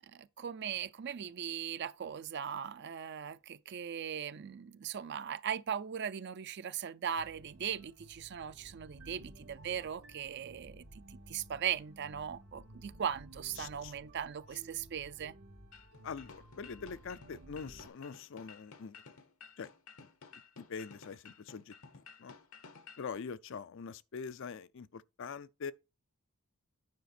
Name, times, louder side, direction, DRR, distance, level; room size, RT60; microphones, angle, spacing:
voice 1, 0.0-15.4, right 8 dB, 50° right, 0.4 m, -39 dB
sound 1, 7.2-17.9, right 1 dB, 75° right, 2.0 m, -55 dB
voice 2, 13.6-13.9 16.0-19.0 19.6-19.7 20.0-20.1 20.6-21.7 22.2-22.3 23.0-25.7, left 5 dB, 60° left, 0.4 m, -43 dB
sound 2, 15.7-23.1, left 5 dB, 75° left, 1.1 m, -55 dB
9.5 x 4.9 x 4.2 m
head